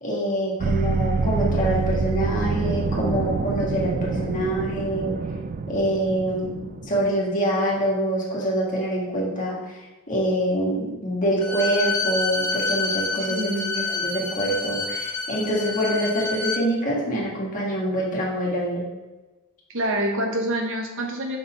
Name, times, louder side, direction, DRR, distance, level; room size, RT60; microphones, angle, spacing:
voice 1, 0.0-5.2 5.7-6.6 6.8-9.8 10.1-13.5 13.9-18.9, right 1 dB, 35° left, -4 dB, 1.7 m, -25 dB
sound 1, 0.6-7.1, right 4 dB, 40° right, 0.3 m, -26 dB
Bowed string instrument, 11.4-16.6, left 3 dB, 85° left, 0.8 m, -28 dB
voice 2, 13.3-13.9 19.7-21.4, right 1 dB, 60° right, 2 dB, 1.0 m, -26 dB
5.2 x 4.2 x 4.8 m, 1.2 s
head